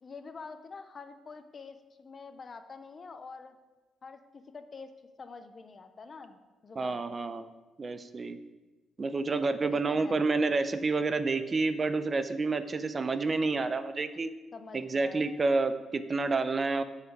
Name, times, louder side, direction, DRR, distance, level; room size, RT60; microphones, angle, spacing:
voice 1, 0.0-3.6 4.0-7.2 9.6-10.2 14.5-15.2, left 4 dB, 40° left, 9 dB, 0.6 m, -47 dB
voice 2, 6.8-7.4 7.8-8.4 9.0-14.3 14.7-16.8, right 3 dB, 35° right, 12 dB, 0.5 m, -29 dB
7.5 x 5.7 x 4.6 m, 1.2 s
cardioid pair, 90°, 0 cm